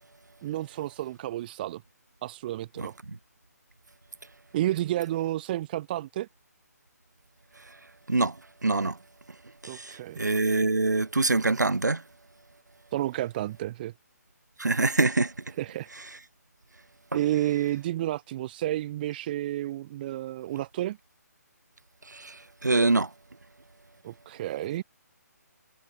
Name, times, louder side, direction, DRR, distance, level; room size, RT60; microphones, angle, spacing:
voice 1, 0.4-1.8 2.2-2.9 4.5-6.3 9.7-10.2 12.9-13.9 15.6-15.9 17.1-21.0 24.0-24.8, right 14 dB, 30° right, 1.0 m, -31 dB
voice 2, 2.8-3.2 8.1-8.4 8.6-9.0 9.6-12.0 14.6-15.3 22.1-23.1, right 3 dB, 90° right, 3.5 m, -25 dB
figure-of-eight pair, 145°, 9 cm